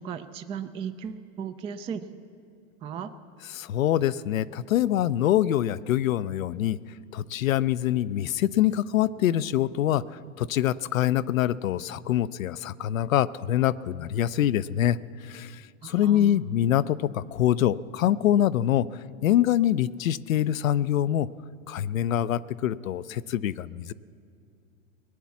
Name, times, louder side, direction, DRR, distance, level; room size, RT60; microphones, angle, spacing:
voice 1, 0.0-2.2 2.8-3.1 15.8-16.5, right 7 dB, 15° right, 10 dB, 0.3 m, -36 dB
voice 2, 3.5-6.8 7.1-10.0 10.4-15.0 15.2-18.9 19.2-21.3 21.7-23.9, left 12 dB, 90° left, 17 dB, 0.5 m, -25 dB
19.0 x 9.2 x 7.2 m, 2.4 s
hypercardioid pair, 105°, 39 cm